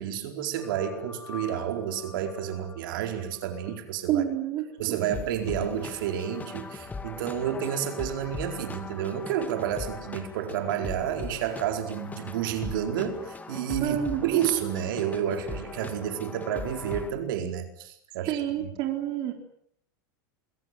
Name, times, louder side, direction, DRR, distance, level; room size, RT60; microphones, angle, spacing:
voice 1, 0.0-4.2 4.8-18.3 18.6-18.7, right 9 dB, 70° right, 5 dB, 4.5 m, -30 dB
sound 1, 0.6-3.2 3.6-3.7 5.1-17.1, left 4 dB, 15° left, 2.5 m, -41 dB
voice 2, 4.1-5.2 13.8-14.5 18.3-19.3, right 10 dB, 40° right, 4 dB, 4.0 m, -29 dB
27.5 x 22.0 x 7.7 m, 0.66 s
supercardioid pair, 125°, 11 cm